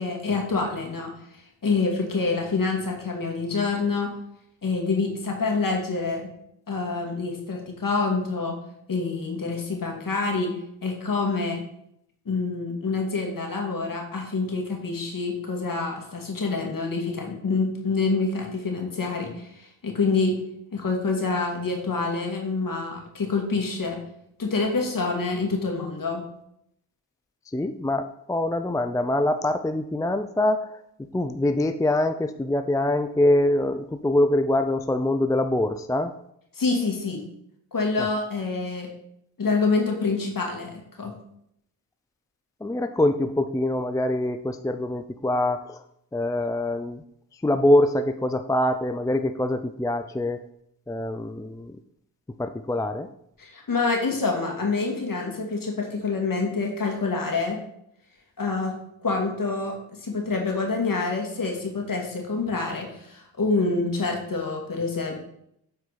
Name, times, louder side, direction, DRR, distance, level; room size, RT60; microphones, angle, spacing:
voice 1, 0.0-4.1 4.6-6.3 6.7-8.6 8.9-11.6 12.3-20.4 20.7-24.0 24.4-26.2 36.5-37.2 37.7-38.9 39.4-41.1 53.4-57.6 58.4-58.8 59.0-59.8 60.0-65.1, left 4 dB, 50° left, 1 dB, 2.3 m, -27 dB
voice 2, 27.5-30.8 31.1-36.1 38.0-38.1 42.6-45.8 46.1-47.0 47.4-50.4 50.9-51.8 52.4-53.1, left 1 dB, 10° left, 9 dB, 0.4 m, -24 dB
8.1 x 4.5 x 4.1 m, 0.74 s
supercardioid pair, 45°, 42 cm